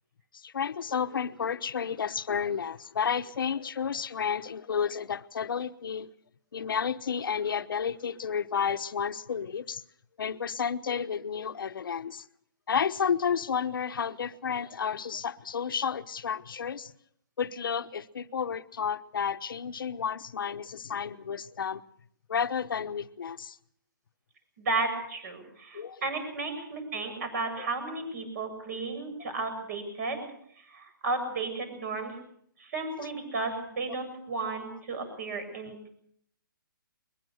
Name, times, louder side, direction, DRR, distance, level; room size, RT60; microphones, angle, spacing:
voice 1, 0.3-6.1 6.5-9.8 10.2-12.2 12.7-16.9 17.4-21.8 22.3-23.6 25.7-26.0 27.6-27.7 28.8-29.0 33.0-33.1, left 7 dB, 75° left, 1.1 m, -31 dB
voice 2, 24.6-30.3 30.7-32.2 32.6-35.8, right 3 dB, 50° right, 7.7 m, -33 dB
22.0 x 21.5 x 6.4 m
hypercardioid pair, 160°, 11 cm